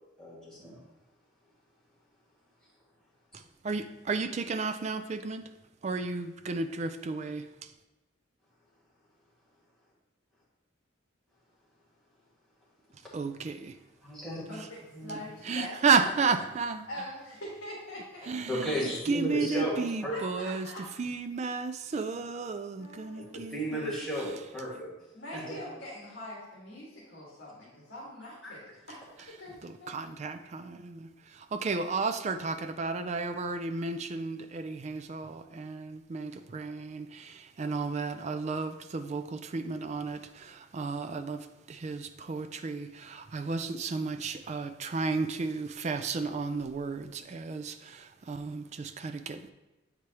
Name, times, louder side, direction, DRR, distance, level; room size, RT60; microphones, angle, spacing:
voice 1, 0.2-0.8 14.0-14.4 14.9-15.2 18.5-20.3 23.3-24.9 25.3-25.6 28.4-28.5, equal, 5° left, -8 dB, 1.8 m, -34 dB
voice 2, 3.6-5.4 5.8-7.4 13.1-13.8 15.5-16.9 18.3-20.7 21.0-23.9 29.6-49.5, right 4 dB, 35° right, 9 dB, 0.3 m, -33 dB
voice 3, 14.5-16.3 16.9-18.5 20.1-20.9 22.8-23.5 25.1-29.0 29.3-30.0, left 1 dB, 55° left, -7 dB, 1.7 m, -43 dB
8.1 x 4.7 x 2.9 m, 1.1 s
head